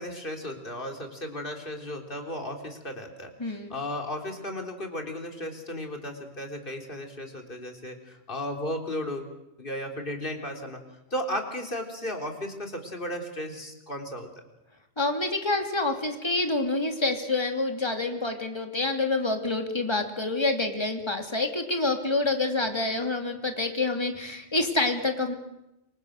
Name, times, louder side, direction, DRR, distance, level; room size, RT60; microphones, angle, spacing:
voice 1, 0.0-9.3 9.6-10.8 11.1-14.3, left 1 dB, 45° left, 3 dB, 3.9 m, -35 dB
voice 2, 3.4-3.7 15.0-25.3, left 2 dB, 20° left, 5 dB, 2.9 m, -27 dB
28.0 x 25.0 x 6.6 m, 0.87 s
omnidirectional pair, 1.3 m